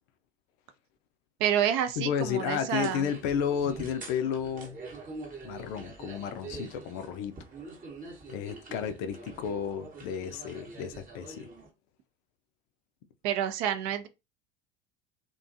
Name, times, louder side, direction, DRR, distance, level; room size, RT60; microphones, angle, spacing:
voice 1, 1.4-3.1 13.2-14.1, right 10 dB, 50° right, 0.5 m, -28 dB
voice 2, 2.0-4.8 5.4-7.4 8.3-11.5, left 8 dB, 55° left, 0.5 m, -32 dB
sound 1, 2.8-11.7, right 3 dB, 25° right, 0.9 m, -45 dB
2.5 x 2.2 x 2.5 m
figure-of-eight pair, 70°, 34 cm